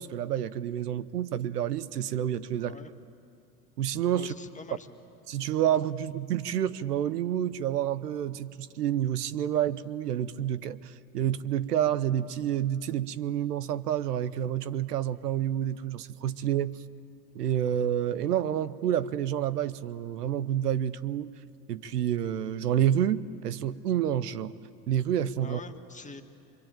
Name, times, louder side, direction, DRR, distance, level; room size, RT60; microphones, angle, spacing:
voice 1, 0.0-2.8 3.8-4.3 5.3-16.8 17.3-21.3 21.7-24.5 24.9-25.6, right 10 dB, 90° right, 0.9 m, -29 dB
voice 2, 2.6-2.9 4.1-4.9 25.4-26.2, left 4 dB, 15° left, 2.0 m, -44 dB
25.0 x 25.0 x 9.0 m
hypercardioid pair, 90°, 46 cm